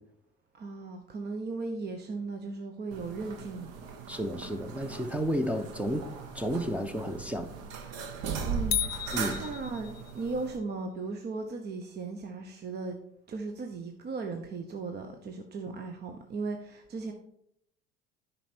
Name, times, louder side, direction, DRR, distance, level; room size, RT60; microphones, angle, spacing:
voice 1, 0.5-3.7 8.4-8.8 9.4-13.0 13.3-17.1, right 3 dB, 35° right, 0.9 m, -37 dB
sound 1, 2.9-10.6, right 6 dB, 55° right, 1.2 m, -38 dB
voice 2, 4.1-6.0 6.3-7.5 9.1-9.4, equal, 5° right, 0.8 m, -31 dB
sound 2, 8.7-10.3, left 12 dB, 90° left, 0.6 m, -33 dB
9.0 x 5.4 x 4.5 m
hypercardioid pair, 75°, 30 cm